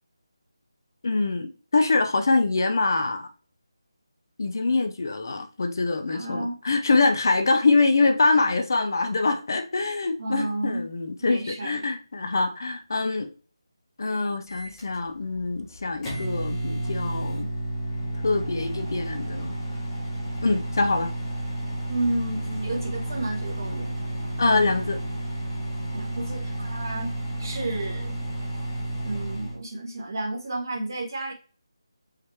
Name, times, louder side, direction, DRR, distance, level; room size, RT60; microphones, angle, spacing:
voice 1, 1.0-3.3 4.4-13.3 14.0-17.5 18.2-19.5 20.4-21.1 24.4-25.0, left 3 dB, 45° left, 0.5 m, -24 dB
voice 2, 6.1-6.5 10.2-10.9 11.2-11.8 21.9-23.9 25.9-28.2 29.0-31.3, right 2 dB, 45° right, 1.5 m, -31 dB
Microwave oven, 14.5-29.6, right 1 dB, 5° left, 1.0 m, -31 dB
4.8 x 2.9 x 3.4 m
figure-of-eight pair, 175°, 3 cm